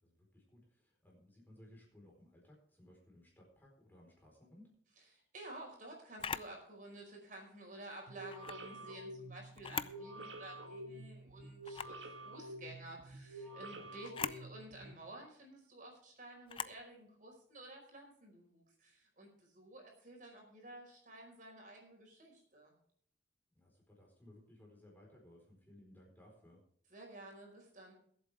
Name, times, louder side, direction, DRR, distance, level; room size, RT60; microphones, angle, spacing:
voice 1, 0.0-4.7 13.7-13.9 23.5-26.6, left 1 dB, 10° left, -2 dB, 4.3 m, -61 dB
voice 2, 5.0-22.7 26.9-27.9, right 1 dB, 45° right, 0 dB, 5.0 m, -52 dB
Camera, 6.2-6.5 8.3-8.6 9.5-10.0 10.5-10.6 11.6-12.0 14.0-14.4 16.5-16.8, left 6 dB, 30° left, 0.4 m, -41 dB
sound 1, 8.1-15.0, right 1 dB, 80° right, 1.7 m, -49 dB
22.0 x 8.5 x 3.5 m, 0.64 s
head